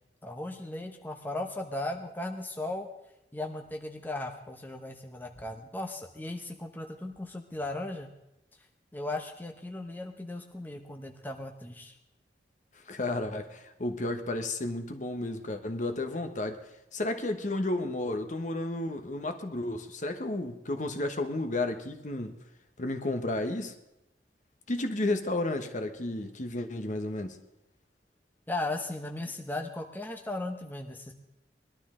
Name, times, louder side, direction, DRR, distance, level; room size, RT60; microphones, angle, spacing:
voice 1, 0.2-2.9 3.3-8.1 8.9-12.0 28.5-31.1, left 2 dB, 10° left, 3 dB, 0.8 m, -37 dB
voice 2, 12.9-16.6 16.9-22.4 22.8-23.8 24.7-27.4, left 2 dB, 45° left, 7 dB, 1.1 m, -32 dB
20.5 x 12.0 x 3.7 m, 0.85 s
head